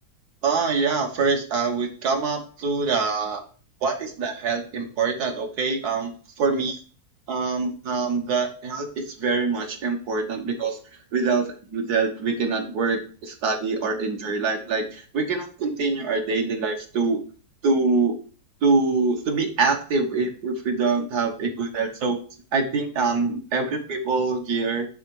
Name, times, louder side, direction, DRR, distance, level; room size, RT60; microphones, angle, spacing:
voice 1, 0.4-3.4 3.8-6.1 6.4-6.8 7.3-10.8 11.1-17.2 17.6-18.1 18.6-22.2 22.5-24.9, right 4 dB, 75° right, 3 dB, 1.7 m, -24 dB
9.5 x 3.8 x 4.6 m, 0.40 s
omnidirectional pair, 1.7 m